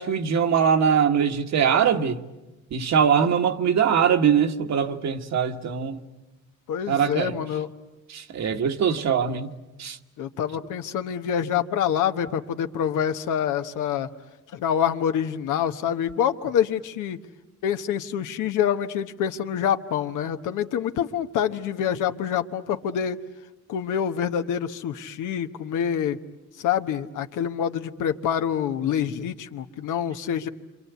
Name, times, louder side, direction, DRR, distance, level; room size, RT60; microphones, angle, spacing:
voice 1, 0.0-2.2 2.7-6.0 6.9-7.4 8.1-9.5 9.8-10.0, right 7 dB, 65° right, 1.6 m, -22 dB
voice 2, 6.7-7.7 10.2-14.1 14.5-17.2 17.6-23.2 23.7-26.2 26.6-30.5, left 9 dB, 85° left, 1.2 m, -26 dB
28.0 x 26.0 x 8.2 m
cardioid pair, 90°, 30 cm